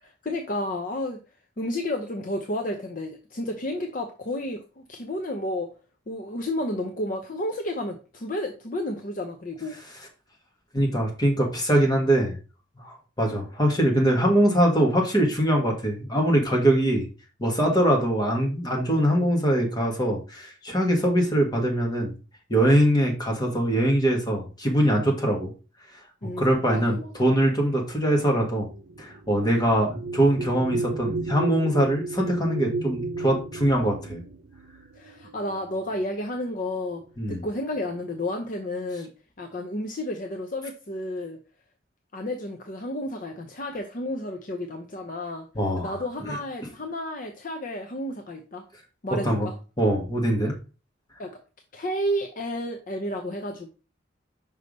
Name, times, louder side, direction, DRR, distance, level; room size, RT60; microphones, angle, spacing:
voice 1, 0.0-1.2 1.6-5.7 6.1-9.8 26.2-27.1 34.9-39.1 39.4-41.4 42.1-45.5 45.8-48.6 49.0-49.6 51.2-51.4 51.7-53.7, left 1 dB, 45° left, 4 dB, 0.6 m, -31 dB
voice 2, 10.7-12.4 12.8-17.0 17.4-22.1 22.5-25.5 26.4-28.7 29.0-34.2 37.2-37.4 45.5-45.9 46.3-46.4 49.2-49.5 49.8-50.5, right 1 dB, 20° left, 1 dB, 1.4 m, -22 dB
sound 1, 27.9-36.2 37.1-37.2 37.6-38.2, right 3 dB, 80° right, 0.6 m, -35 dB
5.5 x 3.3 x 5.2 m, 0.34 s
head